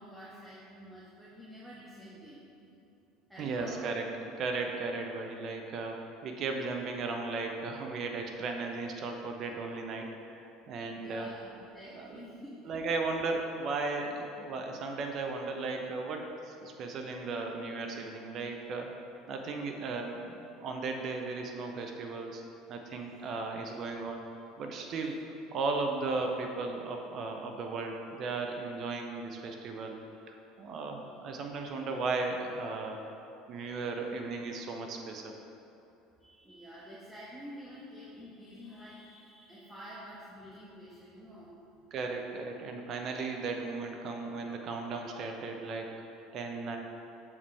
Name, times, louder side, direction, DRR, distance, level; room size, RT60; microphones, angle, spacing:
voice 1, 0.0-2.8 3.3-4.0 10.9-12.6 22.9-23.2 23.6-23.8 24.9-25.1 30.1-30.2 31.0-31.2 33.5-33.8 36.2-41.6, equal, 5° right, -8 dB, 1.1 m, -49 dB
voice 2, 3.4-4.0 4.4-11.3 11.9-12.2 12.7-18.9 19.3-22.4 22.7-24.2 24.6-25.1 25.5-30.0 30.3-33.0 33.5-35.3 41.9-46.0 46.3-46.8, right 3 dB, 50° right, 3 dB, 0.8 m, -36 dB
6.7 x 5.5 x 3.3 m, 2.8 s
hypercardioid pair, 70°, 0 cm